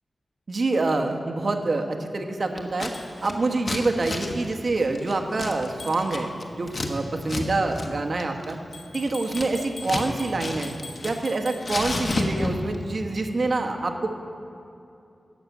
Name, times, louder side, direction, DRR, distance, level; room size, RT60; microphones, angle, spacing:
voice 1, 0.5-2.9 3.2-8.6 8.9-10.7 11.0-14.1, right 3 dB, 55° right, 4 dB, 1.2 m, -26 dB
Scissors, 2.6-2.9 3.2-6.9 7.2-7.5 7.7-7.9 8.2-10.1 10.4-11.3 11.6-12.8, left 2 dB, 45° left, 1.2 m, -31 dB
sound 1, 2.9-3.1 5.8-6.0 8.7-12.3, left 3 dB, 70° left, 2.7 m, -42 dB
12.5 x 6.6 x 8.3 m, 2.7 s
wide cardioid pair, 95°, 0 cm